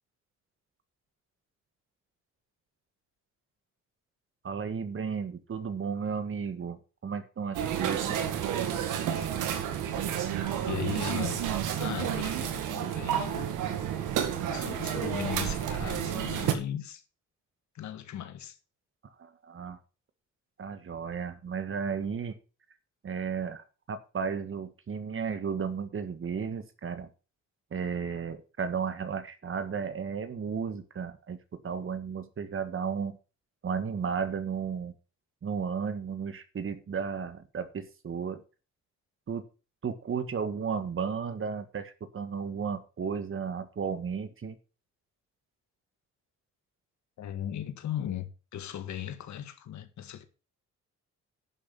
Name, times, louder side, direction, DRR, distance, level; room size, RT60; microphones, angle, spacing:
voice 1, 4.4-8.2 19.2-19.8 20.6-22.4 23.0-27.1 27.7-33.2 33.6-34.9 35.4-38.4 39.3-39.5 39.8-44.6, right 6 dB, 45° right, 1.8 m, -34 dB
sound 1, 7.5-16.5, right 9 dB, 90° right, 1.9 m, -30 dB
voice 2, 10.6-11.4 11.8-13.5 14.5-17.0 17.8-18.6 47.2-50.2, left 10 dB, 70° left, 1.8 m, -37 dB
11.0 x 7.2 x 5.8 m
cardioid pair, 90°, 30 cm